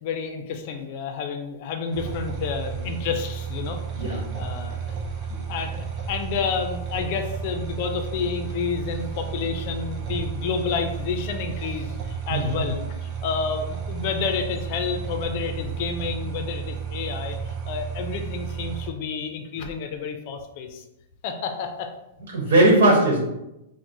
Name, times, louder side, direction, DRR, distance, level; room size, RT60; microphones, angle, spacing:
voice 1, 0.0-5.0 5.5-20.8 21.2-21.9 22.5-22.6, left 5 dB, 40° left, 5 dB, 0.4 m, -30 dB
sound 1, 1.9-18.9, right 7 dB, 30° right, 0.5 m, -32 dB
voice 2, 12.3-12.7 22.3-23.2, right 1 dB, 85° right, -3 dB, 1.0 m, -19 dB
4.5 x 2.1 x 2.6 m, 0.89 s
supercardioid pair, 160°, 0 cm